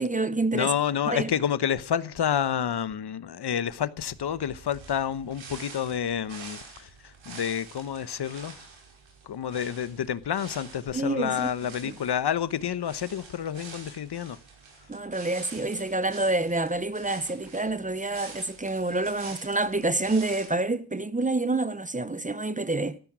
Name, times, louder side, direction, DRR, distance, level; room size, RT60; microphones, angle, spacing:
voice 1, 0.0-0.7 1.1-1.3 10.9-11.5 11.8-12.0 14.9-23.0, right 2 dB, 15° right, 0.9 m, -28 dB
voice 2, 0.5-6.6 7.3-8.5 9.3-14.4, left 9 dB, 60° left, 1.1 m, -29 dB
sound 1, 4.1-20.5, right 4 dB, 80° right, 6.0 m, -47 dB
14.5 x 13.0 x 6.2 m
cardioid pair, 85°, 46 cm